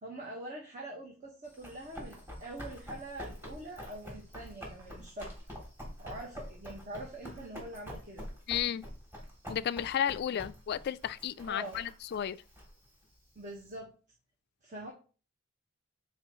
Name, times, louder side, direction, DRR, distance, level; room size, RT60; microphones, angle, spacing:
voice 1, 0.0-5.3 6.0-8.3 11.4-11.8 13.3-13.9 14.6-14.9, right 1 dB, 40° right, 1.4 m, -44 dB
Run, 1.4-13.7, equal, 10° right, 2.9 m, -47 dB
voice 2, 8.5-8.8 9.5-12.4, left 9 dB, 50° left, 0.3 m, -33 dB
8.8 x 4.4 x 3.0 m
head